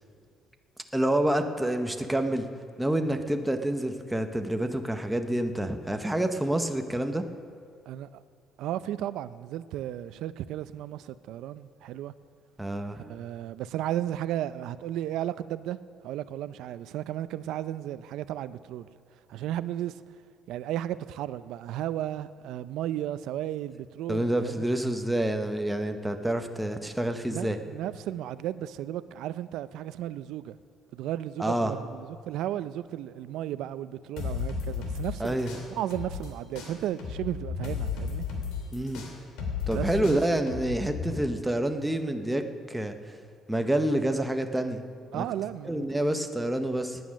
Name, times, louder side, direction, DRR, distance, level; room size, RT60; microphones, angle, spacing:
voice 1, 0.9-2.5 2.8-7.2 12.6-13.0 24.1-27.6 31.4-31.7 35.2-35.6 38.7-39.0 39.7-42.9 43.5-44.8 45.1-45.3 45.7-47.0, right 1 dB, 5° right, 0.6 m, -28 dB
voice 2, 7.9-8.2 8.6-12.1 13.1-15.8 16.0-18.9 19.3-20.0 20.5-24.6 27.3-30.6 30.9-35.4 35.7-38.3 39.7-40.4 45.1-45.8 46.1-46.2, right 12 dB, 75° right, 0.4 m, -34 dB
sound 1, 34.2-36.3 36.5-41.1, left 6 dB, 85° left, 2.6 m, -34 dB
18.0 x 9.5 x 6.2 m
cardioid pair, 170°, 0 cm